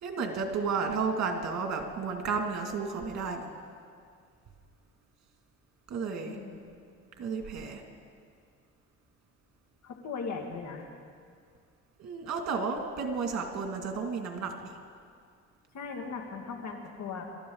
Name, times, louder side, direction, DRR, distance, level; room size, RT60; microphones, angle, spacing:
voice 1, 0.0-3.5 5.9-6.4 7.2-7.8 12.0-14.7, right 5 dB, 60° right, 3 dB, 2.5 m, -32 dB
voice 2, 6.2-6.6 9.8-10.9 15.7-17.3, left 5 dB, 70° left, 2 dB, 2.3 m, -38 dB
26.0 x 13.0 x 4.0 m, 2.2 s
cardioid pair, 90°, 30 cm